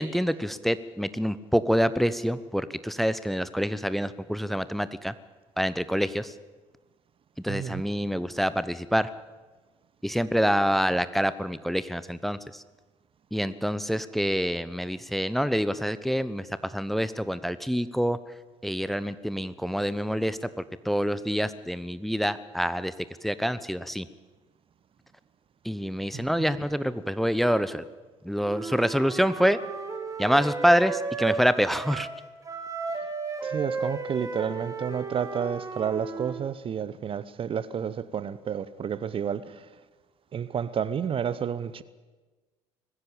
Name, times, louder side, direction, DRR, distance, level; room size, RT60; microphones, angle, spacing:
voice 1, 0.0-5.1 5.6-6.3 7.4-9.1 10.0-12.6 13.3-18.2 18.6-20.5 20.8-22.9 23.2-24.1 25.6-27.8 28.2-29.6 30.2-32.1, equal, ahead, 0.9 m, -26 dB
voice 2, 7.5-7.8 26.1-26.3 33.4-39.7 40.3-41.8, right 8 dB, 40° right, 0.9 m, -30 dB
Wind instrument woodwind instrument, 28.4-32.2 32.4-36.4, right 4 dB, 20° right, 3.0 m, -34 dB
20.5 x 15.5 x 8.8 m
figure-of-eight pair, 55°, 15 cm